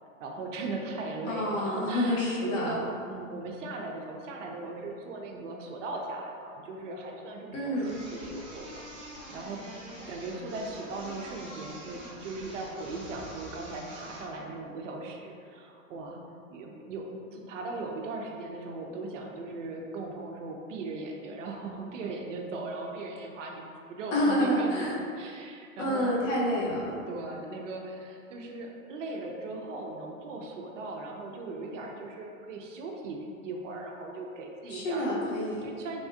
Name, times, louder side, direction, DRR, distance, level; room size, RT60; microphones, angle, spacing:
voice 1, 0.2-8.8 9.3-16.2 16.5-23.6 23.9-26.2 26.8-35.1 35.6-36.0, right 3 dB, 60° right, 1 dB, 0.6 m, -38 dB
voice 2, 1.3-2.7 7.5-8.0 24.1-25.0 25.8-26.9 34.7-35.6, equal, 60° left, -4 dB, 0.9 m, -28 dB
sound 1, 7.8-14.3, right 1 dB, 10° right, 0.8 m, -46 dB
3.5 x 2.3 x 2.5 m, 2.4 s
hypercardioid pair, 120°, 42 cm